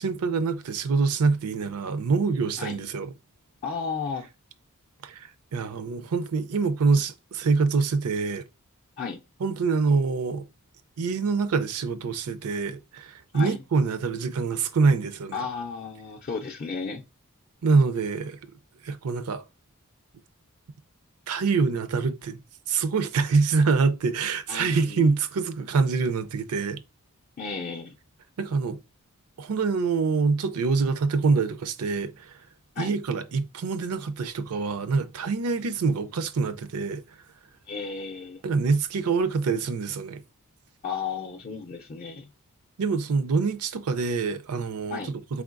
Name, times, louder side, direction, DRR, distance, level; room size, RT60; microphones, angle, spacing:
voice 1, 0.0-3.1 5.0-8.4 9.4-10.4 11.0-15.4 17.6-18.4 18.8-19.4 21.3-22.4 22.7-26.8 28.4-28.8 29.4-32.4 32.8-37.0 38.4-40.2 42.8-45.4, right 4 dB, 70° right, 0.5 m, -25 dB
voice 2, 3.6-4.3 9.0-9.2 13.3-13.6 15.3-17.0 24.5-25.1 27.4-28.0 32.8-32.9 37.7-38.4 40.8-42.3 44.9-45.1, left 5 dB, 40° left, 0.5 m, -33 dB
4.4 x 3.6 x 2.4 m
head